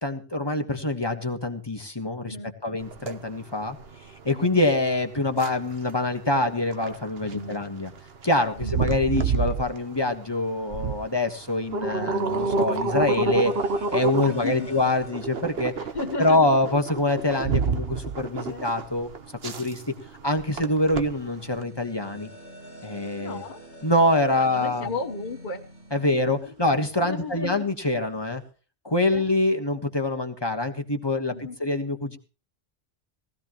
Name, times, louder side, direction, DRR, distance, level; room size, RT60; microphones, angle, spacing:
voice 1, 0.0-2.4 2.6-3.8 4.2-7.9 8.2-15.7 16.2-19.1 19.4-19.8 20.2-22.3 22.8-23.4 23.8-24.9 25.9-28.4 28.8-32.2, left 2 dB, 20° left, 5 dB, 1.4 m, -25 dB
voice 2, 2.2-2.6 4.3-4.4 7.3-7.6 8.6-8.9 14.2-14.7 15.8-16.5 18.5-18.6 23.2-23.6 24.4-25.6 26.0-26.1 26.5-26.6 27.0-27.7 29.1-29.2 31.3-31.6, left 3 dB, 40° left, 4 dB, 1.3 m, -34 dB
sound 1, 2.8-21.6, right 4 dB, 60° right, 1.3 m, -30 dB
sound 2, 12.3-28.5, right 1 dB, 80° right, 7.7 m, -49 dB
19.0 x 15.0 x 3.1 m, 0.35 s
omnidirectional pair, 1.2 m